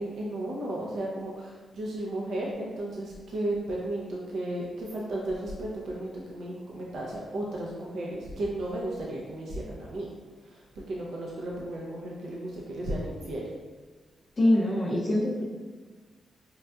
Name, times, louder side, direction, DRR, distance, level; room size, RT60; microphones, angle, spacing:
voice 1, 0.0-10.1 10.4-10.6 10.9-13.4, right 1 dB, 70° right, -3 dB, 0.5 m, -34 dB
voice 2, 14.4-15.4, left 1 dB, 50° left, -7 dB, 0.7 m, -24 dB
4.5 x 2.5 x 2.2 m, 1.4 s
supercardioid pair, 45°, 0 cm